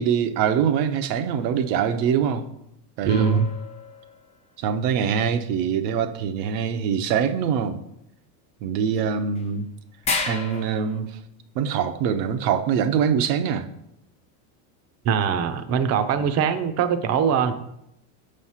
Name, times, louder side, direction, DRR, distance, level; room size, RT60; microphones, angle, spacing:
voice 1, 0.0-2.4 3.0-3.5 4.6-7.8 8.6-9.7 10.3-11.2 11.5-13.7 16.1-16.3, right 7 dB, 85° right, 0.8 m, -24 dB
voice 2, 3.0-3.5 15.0-17.5, right 7 dB, 35° right, 0.5 m, -22 dB
sound 1, 3.1-4.4 9.0-9.1 9.4-9.5 10.0-11.0, left 4 dB, 15° left, 0.3 m, -31 dB
6.4 x 3.2 x 5.6 m
supercardioid pair, 125°, 49 cm